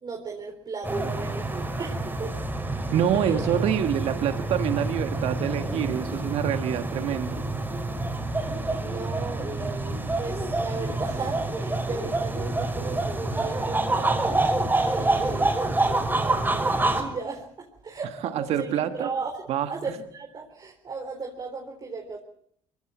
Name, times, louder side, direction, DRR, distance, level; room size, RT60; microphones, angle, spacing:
voice 1, 0.0-2.4 2.7-3.5 8.8-22.2, right 4 dB, 40° right, 1 dB, 4.0 m, -36 dB
sound 1, 0.8-17.0, right 2 dB, 15° right, 5.3 m, -27 dB
voice 2, 2.9-7.4 18.3-19.1 19.5-19.7, right 9 dB, 65° right, 9 dB, 1.6 m, -26 dB
22.5 x 16.5 x 8.8 m, 0.67 s
supercardioid pair, 75°, 11 cm